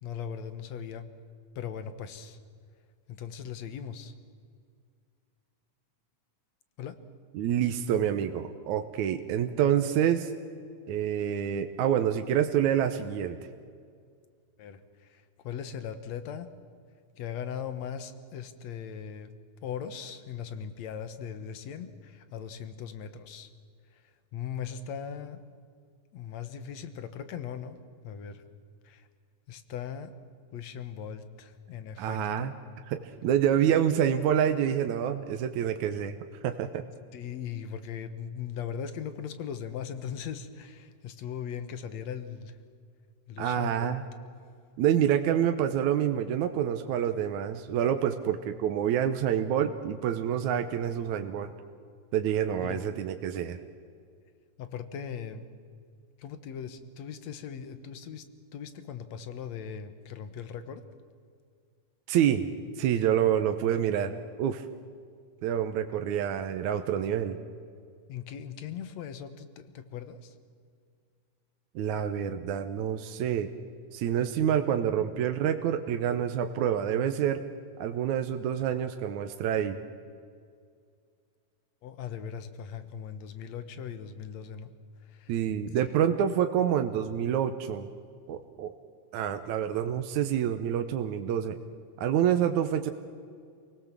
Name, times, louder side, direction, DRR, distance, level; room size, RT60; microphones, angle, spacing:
voice 1, 0.0-1.1 1.6-2.4 3.1-4.1 6.8-7.0 14.6-16.5 17.2-19.3 19.6-23.5 23.9-25.4 26.1-27.8 28.0-28.4 28.8-29.1 29.5-30.1 30.5-32.5 37.1-42.6 43.3-43.9 52.6-52.8 54.6-55.5 56.2-58.2 58.5-60.8 68.1-70.4 81.8-84.7 85.0-85.3, left 8 dB, 65° left, 11 dB, 2.3 m, -39 dB
voice 2, 7.4-10.3 10.9-13.4 32.0-32.5 32.9-36.2 36.4-36.8 43.4-44.0 44.8-51.5 52.1-53.6 62.1-62.5 62.8-64.7 65.4-67.4 71.8-73.5 73.9-77.4 77.8-79.8 85.3-87.9 88.3-88.7 89.1-91.6 92.0-92.9, right 9 dB, 75° right, 7 dB, 2.2 m, -27 dB
28.0 x 18.5 x 7.4 m, 2.2 s
omnidirectional pair, 3.6 m